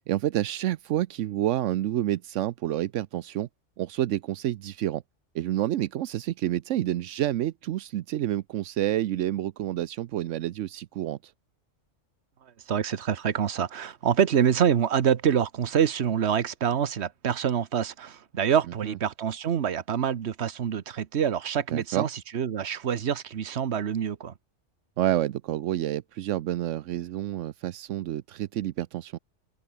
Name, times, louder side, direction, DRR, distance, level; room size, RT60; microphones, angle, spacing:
voice 1, 0.0-3.5 3.8-5.0 5.3-11.3 18.8-19.0 21.7-22.1 25.0-29.2, right 13 dB, 85° right, 1.0 m, -29 dB
voice 2, 12.7-24.3, right 8 dB, 65° right, 1.2 m, -26 dB
open air
omnidirectional pair, 1.2 m